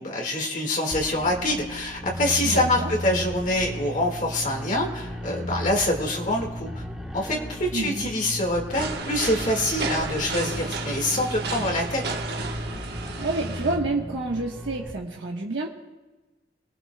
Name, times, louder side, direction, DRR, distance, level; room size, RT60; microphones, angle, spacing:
voice 1, 0.0-6.8 7.1-12.0, left 1 dB, 40° left, 0 dB, 1.9 m, -25 dB
sound 1, 0.9-14.9, equal, 5° right, 1.2 m, -35 dB
voice 2, 2.4-2.9 7.7-8.1 13.2-15.7, right 2 dB, 75° right, -2 dB, 1.3 m, -29 dB
sound 2, 8.7-13.8, right 3 dB, 55° right, 1.3 m, -33 dB
27.5 x 19.0 x 2.3 m, 1.2 s
head